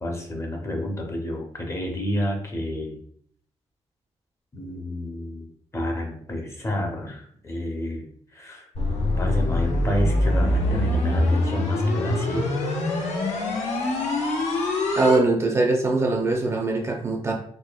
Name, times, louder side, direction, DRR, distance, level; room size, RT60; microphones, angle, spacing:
voice 1, 0.0-3.0 4.5-5.5 5.7-8.7 9.2-12.5, left 1 dB, 25° left, 1 dB, 0.6 m, -30 dB
sound 1, 8.7-15.2, left 1 dB, 85° left, 1.0 m, -24 dB
voice 2, 15.0-17.3, right 3 dB, 25° right, 0 dB, 0.5 m, -22 dB
4.2 x 2.7 x 2.2 m, 0.62 s
wide cardioid pair, 150°, 11 cm